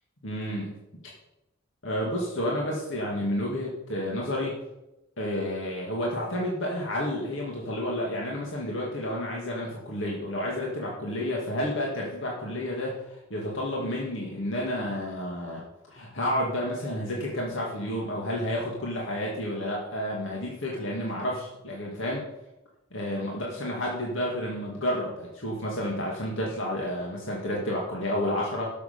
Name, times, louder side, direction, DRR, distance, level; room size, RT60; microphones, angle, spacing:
voice 1, 0.2-0.8 1.8-4.6 5.2-15.6 15.9-22.2 22.9-28.7, left 1 dB, 65° left, -3 dB, 2.2 m, -30 dB
12.0 x 6.9 x 6.8 m, 0.93 s
head